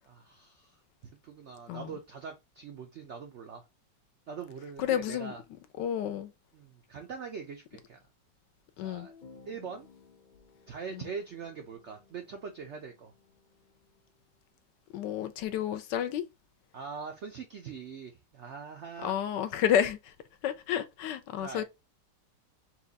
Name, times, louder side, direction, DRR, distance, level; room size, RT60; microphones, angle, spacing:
voice 1, 0.0-0.8 1.2-3.7 4.3-5.4 6.5-8.0 8.8-9.1 9.5-9.9 10.7-13.1 16.7-19.1 21.4-21.6, right 6 dB, 75° right, 0.6 m, -42 dB
voice 2, 4.8-5.3 5.8-6.3 8.8-9.1 10.9-11.1 14.9-16.3 19.0-20.1 20.4-21.6, left 9 dB, 80° left, 1.2 m, -30 dB
sound 1, 8.9-14.3, left 5 dB, 60° left, 0.4 m, -58 dB
4.4 x 2.4 x 3.9 m
omnidirectional pair, 1.9 m